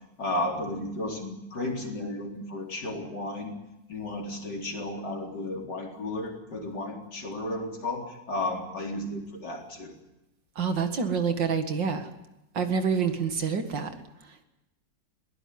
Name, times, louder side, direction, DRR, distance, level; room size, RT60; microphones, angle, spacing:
voice 1, 0.2-3.5 3.9-9.9, left 1 dB, 65° left, 1 dB, 4.6 m, -33 dB
voice 2, 10.6-12.1 12.5-13.9, right 6 dB, 80° right, 7 dB, 2.7 m, -27 dB
21.5 x 17.5 x 9.6 m, 0.93 s
omnidirectional pair, 2.0 m